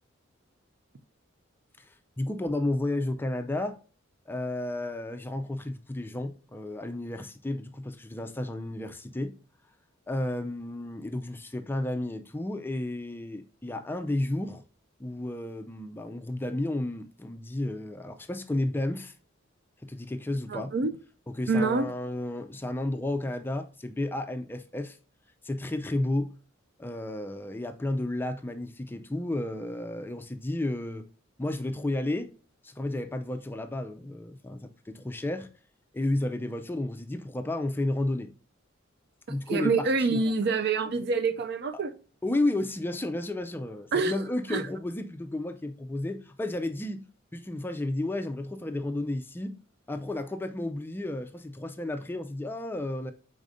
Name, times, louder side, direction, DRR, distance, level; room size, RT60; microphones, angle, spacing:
voice 1, 2.2-3.8 4.3-9.3 10.1-14.6 15.0-19.1 19.8-20.7 21.3-25.0 25.4-26.3 26.8-31.0 31.4-32.3 32.6-35.5 35.9-38.3 39.3-40.2 42.2-47.0 47.3-49.6 49.9-53.1, left 1 dB, 10° left, 0.4 m, -32 dB
voice 2, 20.5-20.9 21.5-21.9 39.5-41.9 43.9-44.1 44.5-44.6, right 4 dB, 55° right, 0.4 m, -26 dB
4.9 x 4.1 x 2.5 m
head